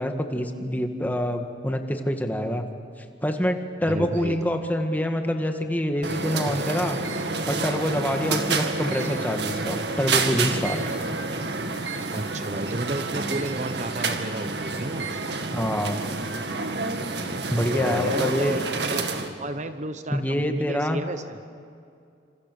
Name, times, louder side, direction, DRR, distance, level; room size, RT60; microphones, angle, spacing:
voice 1, 0.0-2.7 3.2-7.0 7.4-10.8 15.5-16.0 17.5-18.6 20.1-21.0, equal, 10° left, 5 dB, 1.8 m, -26 dB
voice 2, 3.8-4.4 12.1-15.1 17.2-19.1 19.4-21.4, right 2 dB, 40° right, 9 dB, 1.0 m, -33 dB
sound 1, 6.0-19.3, right 3 dB, 70° right, 2.0 m, -28 dB
28.0 x 26.5 x 6.9 m, 2.4 s
head